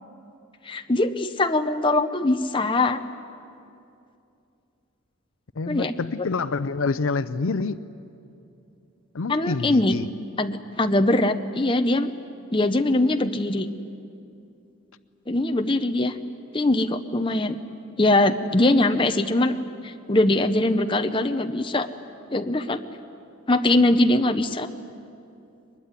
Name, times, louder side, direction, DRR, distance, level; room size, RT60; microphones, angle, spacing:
voice 1, 0.7-3.0 5.7-5.9 9.3-9.9 10.4-12.1 12.5-13.7 15.3-16.1 16.5-17.6 18.0-19.6 19.8-21.9 22.3-22.8 23.5-24.7, left 2 dB, 25° left, 7 dB, 0.8 m, -22 dB
voice 2, 5.6-7.8 9.1-10.1, left 4 dB, 70° left, 14 dB, 0.6 m, -27 dB
23.0 x 21.0 x 9.8 m, 2.7 s
head